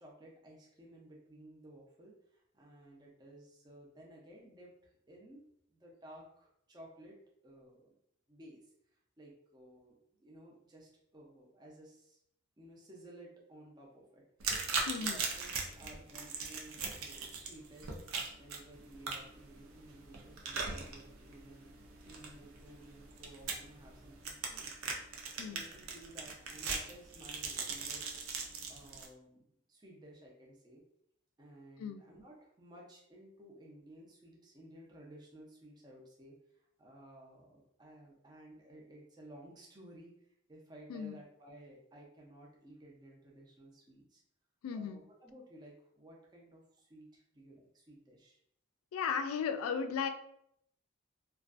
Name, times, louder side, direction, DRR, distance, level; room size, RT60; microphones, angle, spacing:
voice 1, 0.0-7.2 7.4-7.9 8.3-12.2 12.6-18.0 18.4-21.7 22.0-28.0 28.7-29.4 29.7-30.8 31.4-44.2 44.7-48.4, right 1 dB, 20° right, -3 dB, 0.4 m, -56 dB
sound 1, 14.4-29.1, right 4 dB, 80° right, 0.4 m, -40 dB
voice 2, 14.9-15.2 25.4-25.6 31.8-32.0 40.9-41.2 44.6-45.0 48.9-50.1, left 6 dB, 85° left, 9 dB, 0.3 m, -36 dB
2.4 x 2.2 x 2.4 m, 0.73 s
head